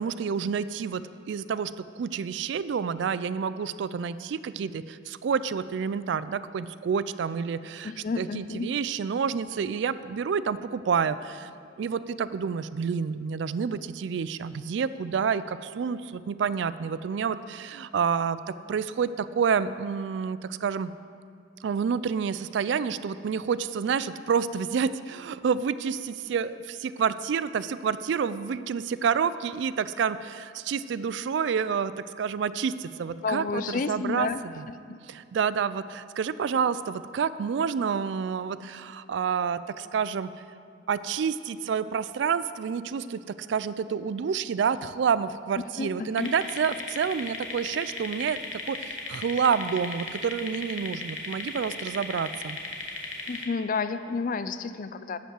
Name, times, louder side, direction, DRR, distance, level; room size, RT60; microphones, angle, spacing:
voice 1, 0.0-11.5 11.8-20.9 21.6-34.3 35.1-40.3 40.9-48.4 48.7-52.6, right 6 dB, 65° right, 15 dB, 0.3 m, -29 dB
voice 2, 7.8-8.7 33.2-35.0 45.8-46.3 53.3-55.2, left 4 dB, 45° left, 12 dB, 0.4 m, -31 dB
sound 1, 46.2-53.4, left 3 dB, 65° left, 1.2 m, -36 dB
11.0 x 5.4 x 7.6 m, 2.3 s
head